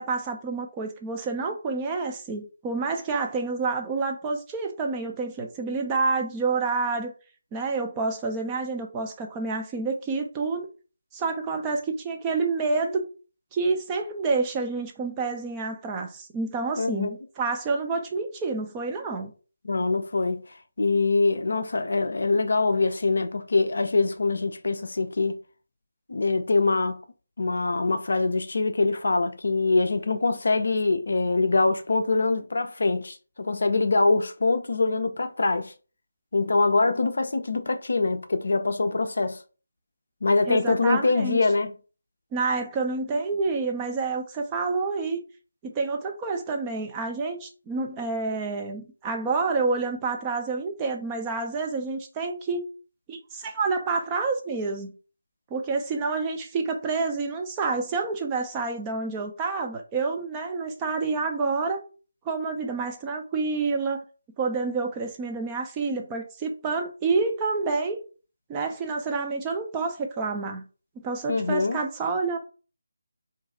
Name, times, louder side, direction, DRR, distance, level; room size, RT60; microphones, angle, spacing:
voice 1, 0.0-7.1 7.5-10.7 11.1-13.0 13.5-19.3 40.5-41.4 42.3-45.2 45.7-52.6 53.1-54.9 55.5-61.8 62.3-64.0 64.4-68.0 68.5-70.7 71.0-72.4, right 4 dB, 15° right, 0.5 m, -28 dB
voice 2, 16.8-17.1 19.6-20.4 20.8-25.4 26.1-27.0 27.4-35.7 36.3-39.4 40.2-41.7 71.3-71.8, left 3 dB, 60° left, 0.4 m, -24 dB
2.5 x 2.3 x 4.0 m
figure-of-eight pair, 155°, 0 cm